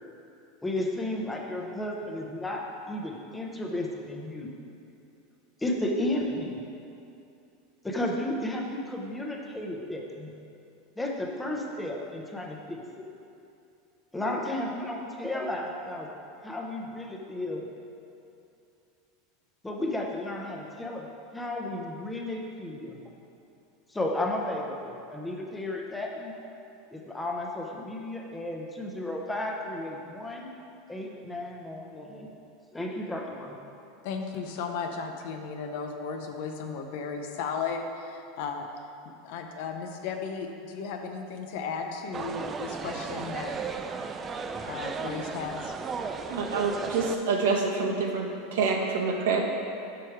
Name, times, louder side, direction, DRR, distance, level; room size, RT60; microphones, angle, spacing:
voice 1, 0.6-4.5 5.6-6.6 7.8-10.3 11.0-13.1 14.1-16.1 16.4-17.7 19.6-21.1 21.3-23.1 23.9-26.3 26.9-30.5 30.9-32.3 32.7-33.6, left 1 dB, 10° left, 0 dB, 0.7 m, -33 dB
voice 2, 34.0-38.7 39.2-43.5 44.6-45.7, left 5 dB, 65° left, 4 dB, 0.6 m, -35 dB
sound 1, 42.1-47.2, right 5 dB, 25° right, 0.3 m, -35 dB
voice 3, 46.3-49.4, right 4 dB, 85° right, 0 dB, 0.9 m, -27 dB
6.1 x 4.7 x 4.6 m, 2.7 s
supercardioid pair, 135°, 0 cm